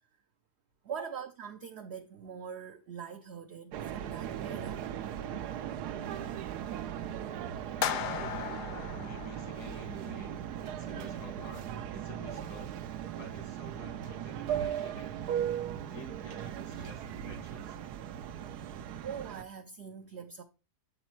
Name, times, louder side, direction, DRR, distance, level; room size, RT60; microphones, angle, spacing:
voice 1, 0.8-4.9 12.3-12.5 18.6-20.4, right 7 dB, 65° right, 0.7 m, -43 dB
sound 1, 3.7-19.4, right 9 dB, 85° right, 1.2 m, -38 dB
sound 2, 7.8-10.0, left 9 dB, 65° left, 0.9 m, -36 dB
voice 2, 7.9-12.7 13.2-15.1 15.9-17.8, left 1 dB, 85° left, 2.3 m, -50 dB
7.1 x 5.1 x 4.4 m
omnidirectional pair, 1.7 m